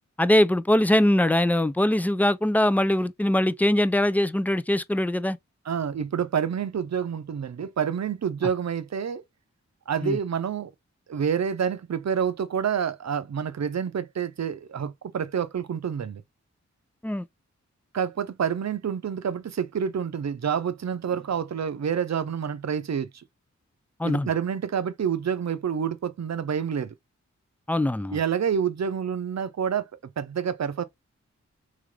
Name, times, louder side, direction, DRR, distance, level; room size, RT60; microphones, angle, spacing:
voice 1, 0.2-5.4 10.0-10.2 17.0-17.2 24.0-24.3 27.7-28.2, left 1 dB, 5° left, 0.4 m, -22 dB
voice 2, 5.6-9.2 9.9-10.7 11.1-16.2 17.9-23.2 24.0-26.9 28.1-29.9 30.2-30.8, right 7 dB, 60° right, 0.7 m, -28 dB
3.5 x 3.3 x 3.6 m
cardioid pair, 45°, 30 cm